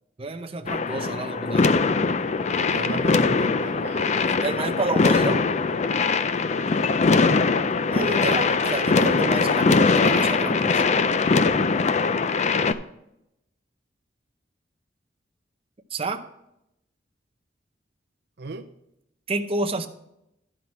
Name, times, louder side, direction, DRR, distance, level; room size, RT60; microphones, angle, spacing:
voice 1, 0.2-1.7 4.4-5.5 7.9-10.8 15.9-16.2 19.3-19.9, right 2 dB, 30° right, 6 dB, 0.7 m, -29 dB
sound 1, 0.7-12.7, left 4 dB, 40° left, 0.4 m, -21 dB
voice 2, 2.5-4.5 7.1-7.6 11.3-11.9 18.4-18.7, right 3 dB, 65° right, 6 dB, 0.6 m, -37 dB
11.5 x 5.8 x 4.7 m, 0.83 s
head